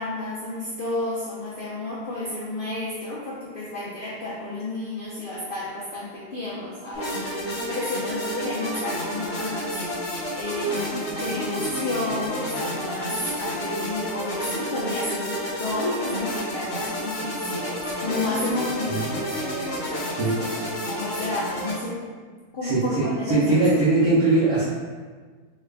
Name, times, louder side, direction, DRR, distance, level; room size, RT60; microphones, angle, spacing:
voice 1, 0.0-22.0 22.5-23.7, left 2 dB, 75° left, -7 dB, 0.5 m, -31 dB
sound 1, 6.9-21.7, equal, 45° left, 0.7 m, -30 dB
voice 2, 22.6-24.7, right 2 dB, 70° right, -10 dB, 1.1 m, -20 dB
3.2 x 2.4 x 3.3 m, 1.5 s
omnidirectional pair, 1.7 m